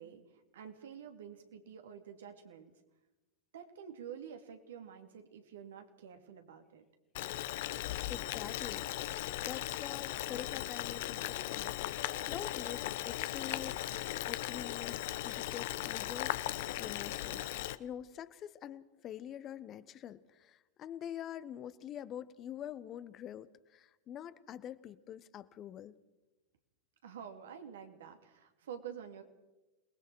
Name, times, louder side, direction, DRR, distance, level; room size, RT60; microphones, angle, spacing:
voice 1, 0.0-2.7 3.5-6.8 27.0-29.2, right 8 dB, 70° right, 5 dB, 2.5 m, -49 dB
Boiling, 7.1-17.8, left 15 dB, 60° left, 0.8 m, -38 dB
voice 2, 7.8-8.8 9.4-13.9 14.3-16.4 16.8-25.9, left 10 dB, 35° left, 14 dB, 1.0 m, -46 dB
28.0 x 20.0 x 4.7 m, 1.0 s
hypercardioid pair, 95°, 0 cm